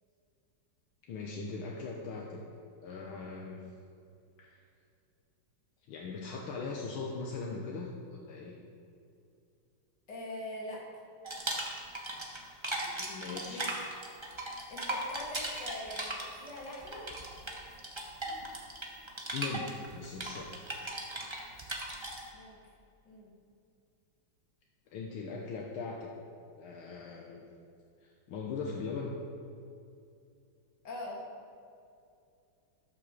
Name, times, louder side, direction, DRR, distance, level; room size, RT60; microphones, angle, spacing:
voice 1, 1.1-2.5 2.8-3.6 4.4-4.7 5.9-8.6 12.8-13.7 19.3-20.7 21.2-21.3 24.9-26.1 26.6-27.4 28.0-29.1, left 4 dB, 75° left, -1 dB, 1.8 m, -40 dB
voice 2, 10.1-10.9 13.5-13.8 14.7-17.1 22.3-22.6 23.1-23.3 30.8-31.2, left 1 dB, 55° left, -3 dB, 2.6 m, -43 dB
sound 1, 11.2-12.4 12.6-22.2, right 1 dB, 20° right, 0.9 m, -38 dB
12.0 x 6.0 x 6.6 m, 2.5 s
omnidirectional pair, 2.3 m